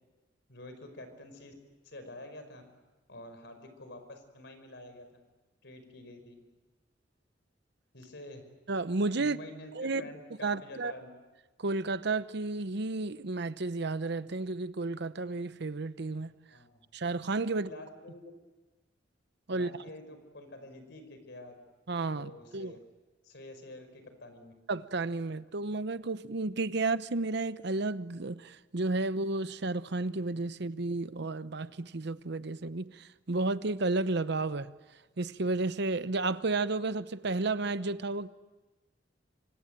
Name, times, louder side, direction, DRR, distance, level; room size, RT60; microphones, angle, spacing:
voice 1, 0.5-1.6 1.8-2.6 3.1-5.2 5.6-6.3 7.9-8.4 9.2-11.1 16.5-16.8 17.5-18.3 19.5-21.5 22.1-22.8 23.2-24.5, left 1 dB, 65° left, 5.2 m, -48 dB
voice 2, 8.7-9.4 9.7-10.0 10.4-10.9 11.6-16.3 16.9-17.7 19.5-19.7 21.9-22.7 24.7-34.7 35.2-38.3, right 3 dB, 65° right, 0.9 m, -32 dB
26.0 x 25.5 x 9.0 m
head